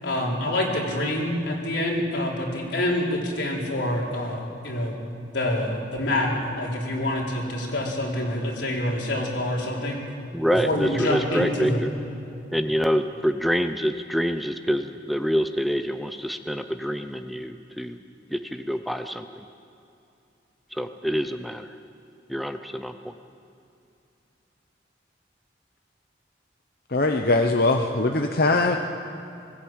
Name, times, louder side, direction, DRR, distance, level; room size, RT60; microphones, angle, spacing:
voice 1, 0.0-4.9 5.3-10.0 10.6-11.8, left 1 dB, 90° left, -2 dB, 4.1 m, -26 dB
voice 2, 10.3-11.9 12.5-18.0 18.3-19.3 20.8-21.7 22.3-23.1, equal, ahead, 7 dB, 0.6 m, -26 dB
voice 3, 26.9-28.8, left 2 dB, 55° left, 4 dB, 0.9 m, -21 dB
20.0 x 16.0 x 8.8 m, 2.7 s
head